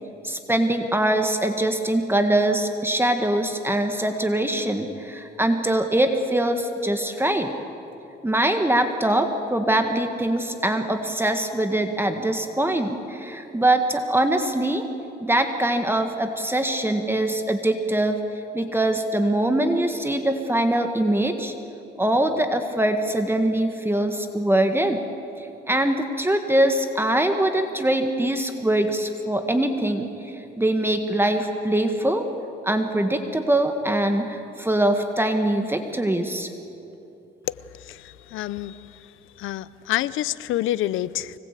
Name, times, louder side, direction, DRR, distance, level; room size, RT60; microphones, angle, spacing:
voice 1, 0.2-7.5 8.2-14.8 15.2-18.2 18.5-21.5 22.0-25.0 25.7-32.3 32.6-36.5, right 1 dB, 10° right, 6 dB, 1.7 m, -23 dB
voice 2, 37.9-38.8 39.4-41.3, left 14 dB, 85° left, 18 dB, 0.7 m, -27 dB
24.5 x 20.0 x 8.3 m, 2.8 s
cardioid pair, 90°, 20 cm